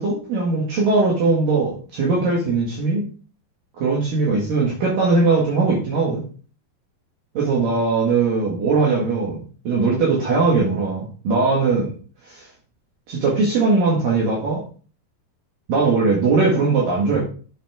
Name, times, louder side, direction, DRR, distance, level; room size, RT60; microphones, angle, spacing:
voice 1, 0.0-3.1 3.8-6.2 7.3-9.4 9.6-11.9 12.2-12.5 13.1-14.6 15.7-17.3, right 3 dB, 60° right, -3 dB, 3.3 m, -20 dB
9.1 x 6.5 x 3.6 m, 0.40 s
omnidirectional pair, 4.6 m